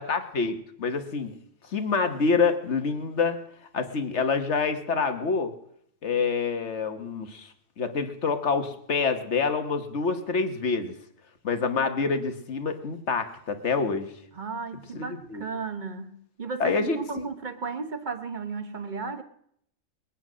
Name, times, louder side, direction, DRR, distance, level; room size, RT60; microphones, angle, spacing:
voice 1, 0.0-1.3 1.7-3.4 3.7-5.5 6.0-10.9 11.4-14.1 14.9-15.4 16.6-17.3, left 4 dB, 55° left, 8 dB, 1.7 m, -27 dB
voice 2, 14.3-19.2, right 4 dB, 35° right, 9 dB, 1.2 m, -34 dB
21.5 x 8.8 x 6.2 m, 0.68 s
omnidirectional pair, 1.5 m